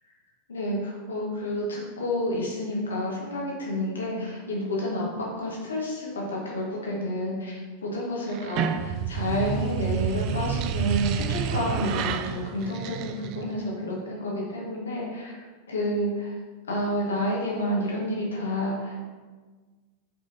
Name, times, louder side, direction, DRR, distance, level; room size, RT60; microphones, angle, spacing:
voice 1, 0.5-15.4 15.7-16.3 16.7-19.0, left 1 dB, 70° left, -3 dB, 1.7 m, -29 dB
sound 1, 8.3-13.6, right 8 dB, 40° right, 0.3 m, -29 dB
7.6 x 5.1 x 2.9 m, 1.4 s
figure-of-eight pair, 90°, 0 cm